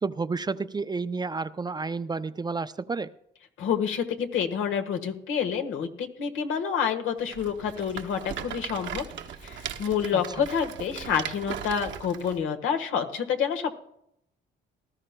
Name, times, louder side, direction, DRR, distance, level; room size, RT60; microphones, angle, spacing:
voice 1, 0.0-3.1 10.1-10.5, right 4 dB, 20° right, 13 dB, 0.4 m, -31 dB
voice 2, 3.6-9.0 9.4-13.7, left 7 dB, 85° left, 6 dB, 1.4 m, -28 dB
Rattle, 7.3-12.4, right 8 dB, 70° right, 1.1 m, -38 dB
18.5 x 13.0 x 2.2 m, 0.76 s
cardioid pair, 90°, 20 cm